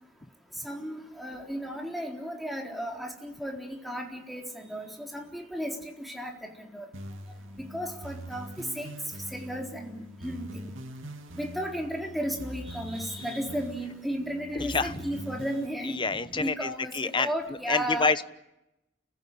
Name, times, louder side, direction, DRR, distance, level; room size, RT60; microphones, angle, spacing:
voice 1, 0.6-6.9 7.7-8.9 9.3-10.6 11.4-18.1, equal, ahead, 1 dB, 3.9 m, -34 dB
sound 1, 6.9-15.7, equal, 90° right, 2.4 m, -43 dB
voice 2, 14.6-14.9 15.8-17.3 17.7-18.2, left 4 dB, 25° left, 13 dB, 1.0 m, -27 dB
30.0 x 15.5 x 10.0 m, 0.91 s
head